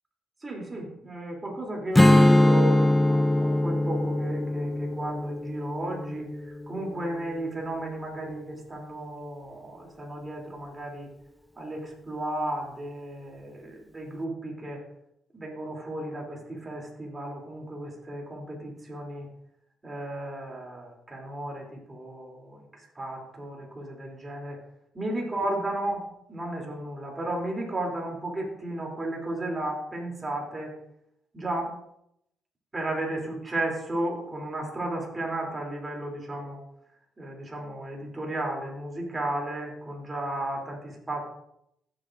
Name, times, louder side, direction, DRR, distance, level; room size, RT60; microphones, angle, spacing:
voice 1, 0.4-11.1 11.6-14.8 15.3-19.3 19.8-24.6 24.9-30.7 31.3-31.7 32.7-36.6 37.2-41.3, right 1 dB, 25° right, 0 dB, 3.1 m, -34 dB
Strum, 1.9-7.3, left 1 dB, 10° left, 0.4 m, -22 dB
14.5 x 7.8 x 2.6 m, 0.77 s
cardioid pair, 90°, 0 cm